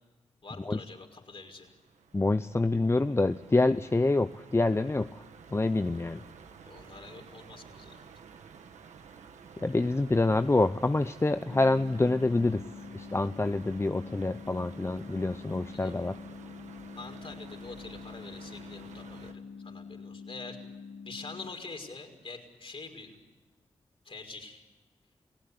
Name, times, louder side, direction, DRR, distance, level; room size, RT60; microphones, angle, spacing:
voice 1, 0.4-1.7 6.7-8.1 15.7-15.9 17.0-20.6 21.1-23.2 24.0-24.7, left 3 dB, 50° left, 4 dB, 5.4 m, -45 dB
sound 1, 1.4-19.3, right 6 dB, 75° right, 1.9 m, -52 dB
voice 2, 2.1-5.2 5.5-6.2 9.6-12.7 12.9-16.2, left 2 dB, 20° left, 11 dB, 0.8 m, -26 dB
sound 2, 11.5-21.5, left 5 dB, 80° left, 1.8 m, -46 dB
29.0 x 17.5 x 9.8 m, 1.1 s
supercardioid pair, 45°, 12 cm